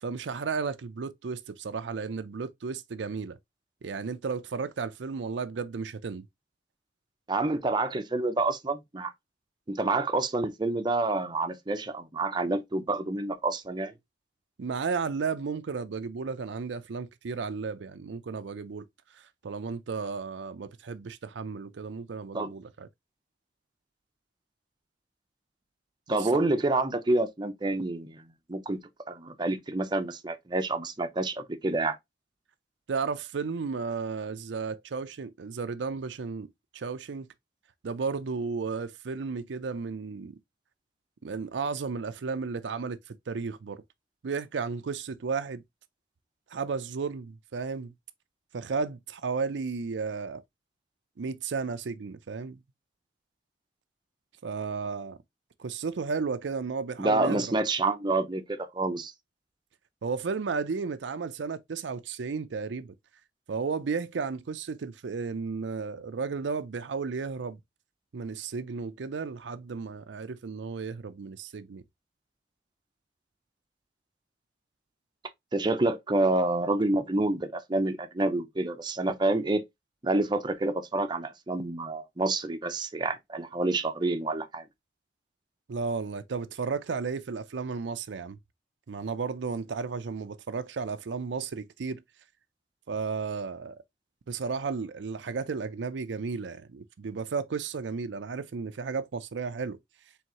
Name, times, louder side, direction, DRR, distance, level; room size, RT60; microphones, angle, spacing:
voice 1, 0.0-3.4 3.8-6.2 14.6-18.8 19.1-22.9 26.1-26.3 32.9-36.5 36.7-37.3 37.8-40.3 41.2-43.8 44.2-45.6 46.5-47.9 48.5-50.4 51.2-52.6 54.4-55.2 55.6-57.5 60.0-62.9 63.5-67.6 68.1-71.8 85.7-88.4 88.9-92.0 92.9-93.8 94.3-99.8, right 5 dB, 80° right, 0.5 m, -33 dB
voice 2, 7.3-9.1 9.7-13.9 22.3-22.5 26.1-28.8 29.1-32.0 57.0-59.1 75.5-79.6 80.0-84.6, right 2 dB, 25° right, 0.6 m, -28 dB
4.6 x 3.5 x 2.9 m
head